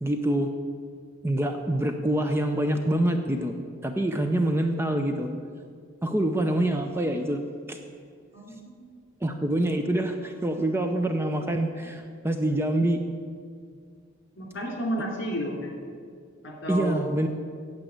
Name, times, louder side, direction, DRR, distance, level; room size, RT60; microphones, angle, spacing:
voice 1, 0.0-0.5 1.2-3.5 3.8-5.3 6.0-7.4 7.7-7.8 9.2-13.0 16.7-17.3, right 1 dB, 10° right, 5 dB, 0.5 m, -26 dB
voice 2, 8.3-9.0 14.4-15.7 16.4-17.1, equal, 55° left, 0 dB, 2.8 m, -32 dB
9.0 x 7.6 x 8.6 m, 2.1 s
head